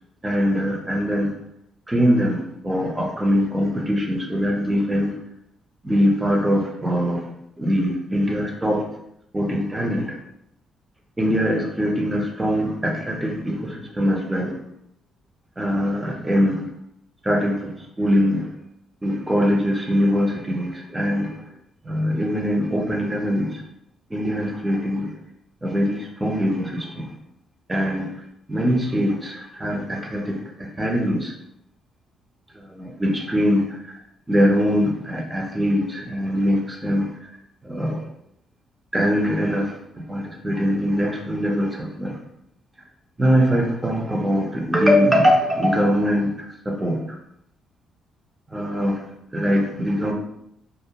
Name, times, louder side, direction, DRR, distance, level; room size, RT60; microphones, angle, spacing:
voice 1, 0.2-1.3 1.9-5.1 5.8-7.3 7.6-8.9 9.3-10.2 11.2-14.5 15.6-16.6 17.2-18.5 19.0-21.4 21.8-23.6 24.1-25.1 25.6-27.1 27.7-28.2 28.5-31.3 32.5-34.0 34.3-37.2 37.6-38.0 38.9-42.2 43.2-47.2 48.5-50.1, equal, 15° right, 1 dB, 0.6 m, -22 dB
2.4 x 2.1 x 2.8 m, 0.76 s
cardioid pair, 90°, 0 cm